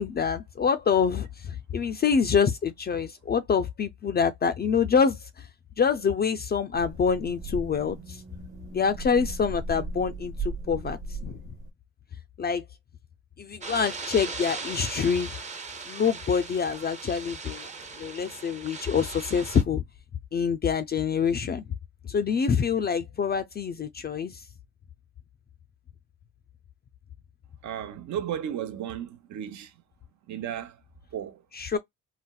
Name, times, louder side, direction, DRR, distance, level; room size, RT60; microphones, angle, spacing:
voice 1, 0.0-5.5 5.8-8.2 8.7-11.4 12.4-12.6 13.4-15.3 15.9-17.7 18.0-19.8 20.3-21.7 22.1-24.4 31.5-31.8, left 6 dB, 35° left, 0.4 m, -26 dB
sound 1, 6.7-11.7, right 3 dB, 45° right, 1.2 m, -37 dB
sound 2, 13.6-19.6, right 4 dB, 25° right, 0.7 m, -39 dB
voice 2, 27.6-29.7 30.3-30.8 31.1-31.4, right 10 dB, 70° right, 0.8 m, -34 dB
4.1 x 2.1 x 2.2 m
cardioid pair, 90°, 30 cm